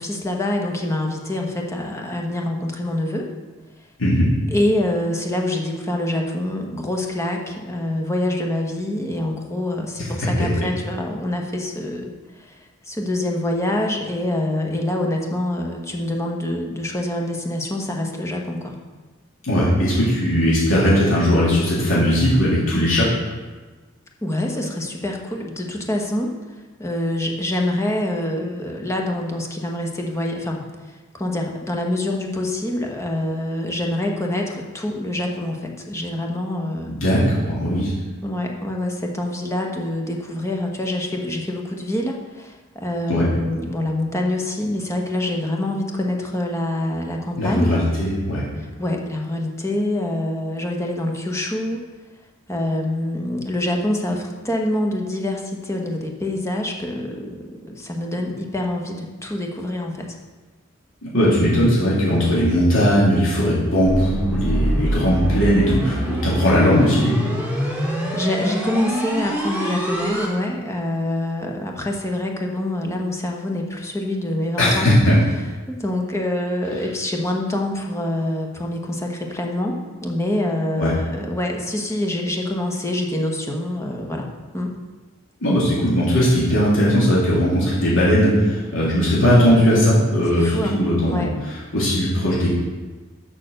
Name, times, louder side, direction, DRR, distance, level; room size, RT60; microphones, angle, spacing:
voice 1, 0.0-3.3 4.5-12.6 12.9-18.8 24.2-26.3 26.8-30.6 31.1-36.9 38.2-47.8 48.8-51.9 52.5-60.1 68.1-74.9 75.7-84.8 90.3-91.3, left 1 dB, 15° left, 1 dB, 1.2 m, -25 dB
voice 2, 19.4-23.1 37.0-37.9 43.1-43.3 47.4-48.4 61.0-67.2 74.6-75.2 80.8-80.9 85.4-91.3 91.7-92.5, equal, 80° left, -7 dB, 2.8 m, -18 dB
sound 1, 63.8-70.3, equal, 5° right, 2.0 m, -24 dB
6.7 x 6.4 x 6.5 m, 1.3 s
head